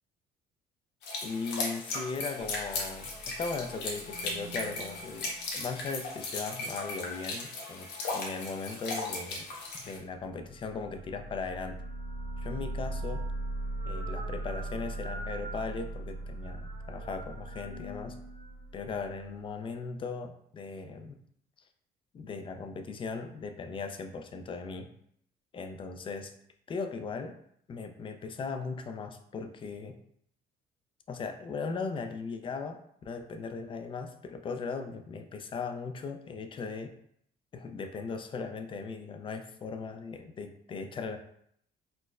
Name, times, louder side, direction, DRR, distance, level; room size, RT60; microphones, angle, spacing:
sound 1, 1.0-10.0, left 2 dB, 90° left, 0.8 m, -37 dB
voice 1, 1.2-9.5 9.8-11.8 12.4-13.2 13.8-18.2 18.7-21.1 22.1-24.9 25.5-26.3 26.7-27.3 27.7-30.0 31.1-36.9 37.5-41.2, left 4 dB, 30° left, 7 dB, 0.4 m, -38 dB
sound 2, 2.4-6.0 10.2-19.5, right 2 dB, 45° right, 0.8 m, -40 dB
4.3 x 2.0 x 2.3 m, 0.69 s
cardioid pair, 110°, 17 cm